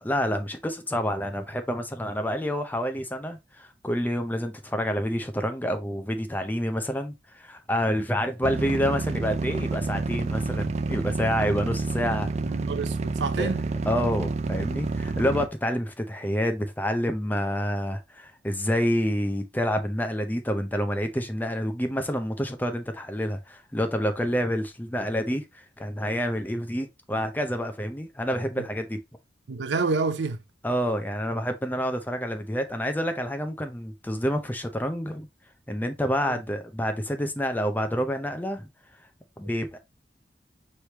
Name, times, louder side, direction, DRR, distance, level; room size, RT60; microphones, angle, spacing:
voice 1, 0.0-12.3 13.4-13.5 13.9-25.4 25.8-29.0 30.6-35.3 35.7-38.7 39.4-39.8, equal, 10° left, 0.6 m, -28 dB
sound 1, 8.4-15.5, right 3 dB, 40° right, 0.4 m, -29 dB
voice 2, 12.4-13.7 28.6-28.7 29.5-30.4 36.2-36.4, right 4 dB, 85° right, 0.5 m, -28 dB
4.9 x 3.2 x 2.9 m
head